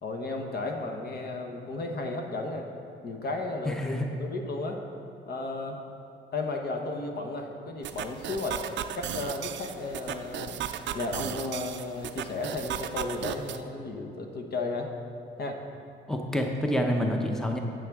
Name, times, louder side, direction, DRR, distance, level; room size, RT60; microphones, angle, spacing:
voice 1, 0.0-2.7 3.0-4.8 5.3-5.8 6.3-8.6 8.9-10.6 10.9-14.9 15.4-15.6, left 2 dB, 50° left, 3 dB, 1.0 m, -34 dB
voice 2, 3.7-4.1 16.1-17.6, equal, 5° left, 3 dB, 0.7 m, -27 dB
sound 1, 7.8-13.6, right 10 dB, 65° right, 0.5 m, -36 dB
9.1 x 8.6 x 3.5 m, 2.5 s
cardioid pair, 90°, 20 cm